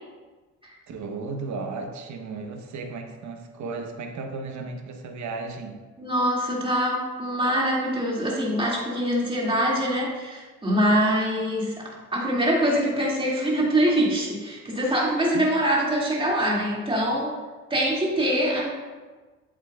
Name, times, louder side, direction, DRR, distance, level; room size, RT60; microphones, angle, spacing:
voice 1, 0.9-5.8 15.3-15.5, right 4 dB, 70° right, 4 dB, 1.0 m, -35 dB
voice 2, 6.0-17.3 17.7-18.7, equal, 15° right, -4 dB, 2.2 m, -24 dB
8.0 x 7.6 x 2.3 m, 1.3 s
cardioid pair, 90°, 30 cm